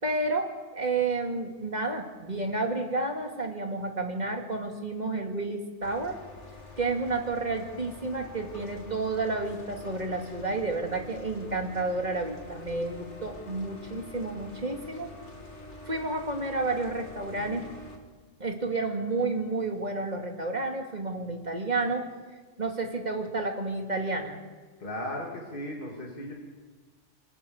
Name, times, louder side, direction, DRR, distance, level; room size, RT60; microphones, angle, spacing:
voice 1, 0.0-6.2 6.8-15.1 15.9-17.7 18.4-22.1 22.6-24.4, right 3 dB, 35° right, 3 dB, 2.6 m, -31 dB
sound 1, 5.8-18.0, left 2 dB, 65° left, 2.7 m, -46 dB
voice 2, 24.8-26.3, left 1 dB, 45° left, -1 dB, 3.1 m, -36 dB
26.0 x 17.5 x 7.2 m, 1.4 s
omnidirectional pair, 1.3 m